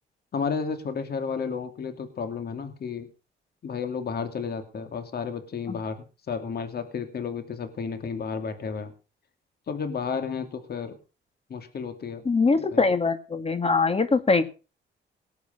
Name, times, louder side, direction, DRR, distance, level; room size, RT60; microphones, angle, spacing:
voice 1, 0.3-3.1 3.6-8.9 9.7-11.0 11.5-12.2 12.5-12.9, left 5 dB, 55° left, 8 dB, 2.8 m, -32 dB
voice 2, 12.2-14.4, left 4 dB, 30° left, 10 dB, 2.3 m, -22 dB
19.0 x 8.4 x 5.7 m, 0.34 s
cardioid pair, 90°, 20 cm